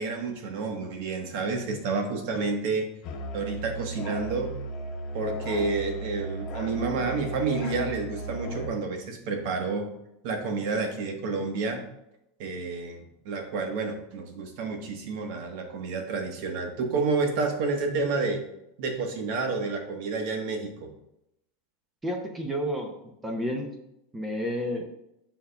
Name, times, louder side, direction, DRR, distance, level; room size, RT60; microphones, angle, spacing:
voice 1, 0.0-2.9 3.3-4.5 5.1-9.9 10.2-11.8 12.4-18.4 18.8-20.9, right 4 dB, 55° right, 4 dB, 1.2 m, -29 dB
Musical instrument, 3.0-8.7, right 1 dB, 40° left, 0.9 m, -36 dB
voice 2, 22.0-22.9 23.2-23.7 24.1-24.8, equal, 10° right, 3 dB, 0.7 m, -30 dB
9.1 x 5.7 x 2.3 m, 0.83 s
supercardioid pair, 155°, 0 cm